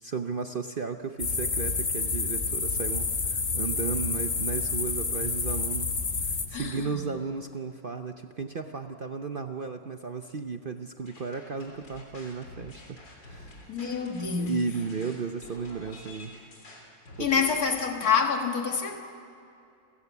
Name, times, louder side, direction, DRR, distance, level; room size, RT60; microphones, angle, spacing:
voice 1, 0.0-5.9 6.2-13.7 14.4-16.3 17.2-17.3, right 5 dB, 55° right, 0.6 m, -34 dB
sound 1, 1.2-6.5, left 4 dB, 35° left, 1.5 m, -29 dB
voice 2, 6.5-7.0 13.7-14.5 17.2-19.0, left 6 dB, 55° left, 2.2 m, -27 dB
sound 2, 11.1-17.6, left 1 dB, 90° left, 4.0 m, -48 dB
29.5 x 14.5 x 8.2 m
omnidirectional pair, 1.9 m